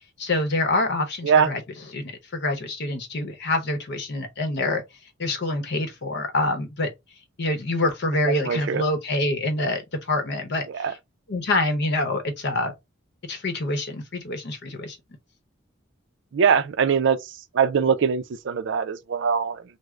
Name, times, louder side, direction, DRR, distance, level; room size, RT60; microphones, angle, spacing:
voice 1, 0.2-1.6 1.9-4.8 5.2-6.9 7.4-11.0 11.3-12.7 13.3-15.0, left 2 dB, 60° left, 0.8 m, -26 dB
voice 2, 8.3-8.8 10.8-10.9 16.3-17.2 17.5-19.6, right 6 dB, 65° right, 0.4 m, -22 dB
3.6 x 2.0 x 3.1 m
head